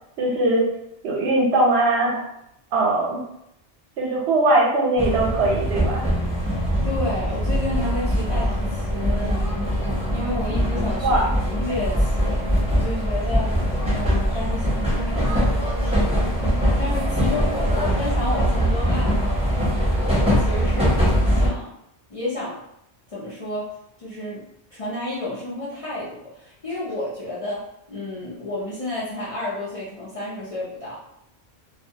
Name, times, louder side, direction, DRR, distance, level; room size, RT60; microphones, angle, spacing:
voice 1, 0.2-0.7 1.0-2.3 2.7-3.2 4.0-6.0 11.0-11.2, right 2 dB, 80° right, -2 dB, 0.9 m, -20 dB
sound 1, 5.0-21.5, equal, 5° right, 0.7 m, -22 dB
voice 2, 6.8-9.4 10.1-12.4 12.7-13.6 13.9-19.4 19.9-21.7 22.1-22.6 23.1-24.5 24.7-31.0, left 1 dB, 45° left, -9 dB, 0.5 m, -31 dB
2.2 x 2.2 x 2.7 m, 0.78 s
omnidirectional pair, 1.1 m